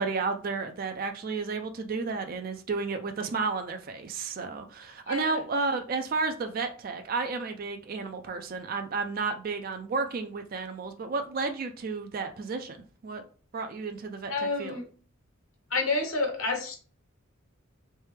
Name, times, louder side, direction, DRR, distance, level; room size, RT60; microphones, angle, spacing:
voice 1, 0.0-12.8 13.0-13.3 13.5-14.8, right 4 dB, 45° right, 0.3 m, -32 dB
voice 2, 14.3-14.8 15.7-16.8, left 3 dB, 85° left, 1.1 m, -29 dB
3.3 x 3.1 x 3.2 m
head